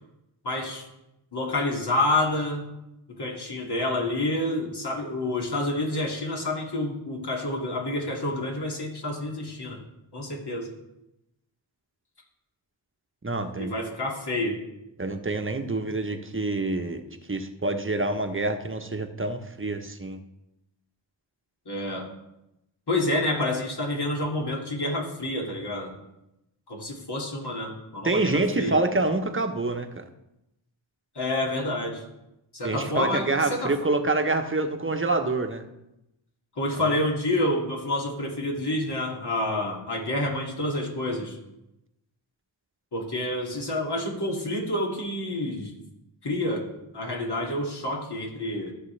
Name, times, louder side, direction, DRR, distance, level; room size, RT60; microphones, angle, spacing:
voice 1, 0.4-0.9 1.3-2.6 3.1-9.8 10.1-10.7 13.6-14.6 21.7-22.1 22.9-25.9 26.7-28.8 31.1-32.0 32.5-33.7 36.6-41.4 42.9-45.8 46.2-46.7 46.9-48.7, left 1 dB, 55° left, -1 dB, 2.5 m, -28 dB
voice 2, 13.2-13.7 15.0-17.0 17.3-20.2 28.0-30.0 32.6-35.6 36.8-36.9, right 2 dB, 25° right, 6 dB, 1.1 m, -26 dB
14.0 x 6.5 x 3.3 m, 0.90 s
cardioid pair, 45°, 46 cm